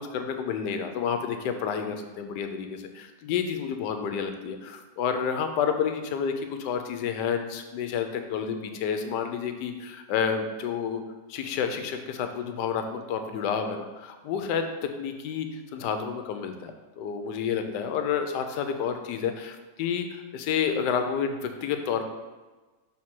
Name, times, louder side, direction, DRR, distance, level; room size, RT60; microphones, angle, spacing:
voice 1, 0.0-6.3 6.6-11.0 11.3-22.0, left 7 dB, 80° left, 7 dB, 1.2 m, -30 dB
6.3 x 3.7 x 4.4 m, 1.2 s
omnidirectional pair, 1.9 m